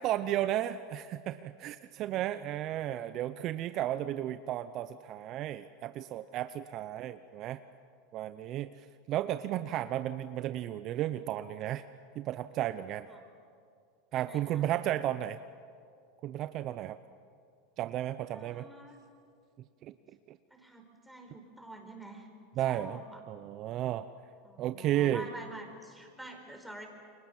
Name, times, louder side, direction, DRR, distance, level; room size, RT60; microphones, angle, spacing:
voice 1, 0.0-7.6 8.1-8.7 9.1-11.8 12.1-13.1 14.1-15.4 16.2-17.0 17.8-18.7 19.8-19.9 20.3-20.4 22.6-23.0 23.3-24.1 24.6-25.3, right 12 dB, 45° right, 12 dB, 0.8 m, -33 dB
voice 2, 14.1-14.7 18.3-19.0 20.5-22.3 22.6-23.2 24.4-26.9, right 1 dB, ahead, 2 dB, 4.9 m, -48 dB
30.0 x 23.5 x 7.4 m, 2.4 s
supercardioid pair, 115°, 0 cm